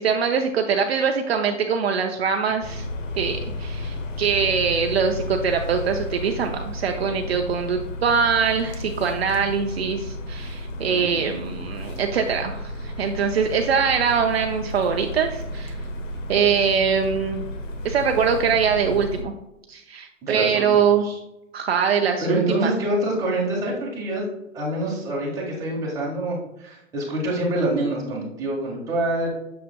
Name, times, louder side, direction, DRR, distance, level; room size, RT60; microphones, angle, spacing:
voice 1, 0.0-2.9 3.2-15.8 16.3-17.5 17.8-19.3 19.7-21.1 21.5-22.7, right 6 dB, 55° right, 4 dB, 0.6 m, -23 dB
sound 1, 2.6-19.2, left 1 dB, 75° left, 1.1 m, -33 dB
voice 2, 10.9-11.5 20.2-21.2 22.2-24.3 24.5-29.3, right 1 dB, 10° right, -5 dB, 1.6 m, -26 dB
6.6 x 6.6 x 2.2 m, 0.90 s
hypercardioid pair, 155°, 39 cm